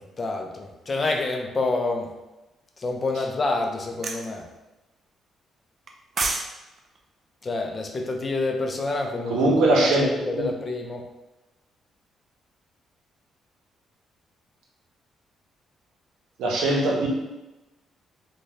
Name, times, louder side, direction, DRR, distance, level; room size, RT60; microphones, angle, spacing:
voice 1, 0.0-2.1 2.8-4.4 7.4-9.4 9.8-11.0, left 2 dB, 35° left, 2 dB, 0.4 m, -28 dB
sound 1, 4.0-4.3 5.9-6.5 6.8-7.0, right 3 dB, 45° right, 0.4 m, -27 dB
voice 2, 9.3-10.0 10.4-10.5 16.4-17.1, right 2 dB, 85° right, -2 dB, 0.7 m, -20 dB
2.6 x 2.2 x 3.2 m, 1.0 s
cardioid pair, 90°, 0 cm